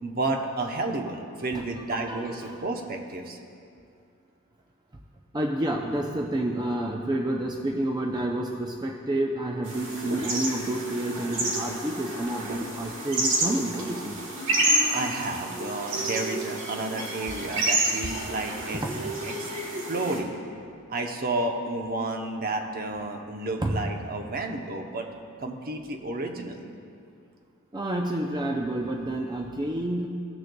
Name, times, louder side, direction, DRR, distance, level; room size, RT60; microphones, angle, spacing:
voice 1, 0.0-3.4 14.9-19.1 19.4-19.5 19.9-20.3 20.9-25.1 25.4-26.6, right 2 dB, 45° right, 3 dB, 0.7 m, -31 dB
voice 2, 1.4-2.6 5.3-14.2 18.7-19.1 23.6-23.8 27.7-30.1, right 1 dB, 20° right, 1 dB, 0.5 m, -29 dB
sound 1, 9.6-20.2, right 1 dB, 60° right, 1.5 m, -29 dB
17.5 x 6.4 x 2.3 m, 2.5 s
head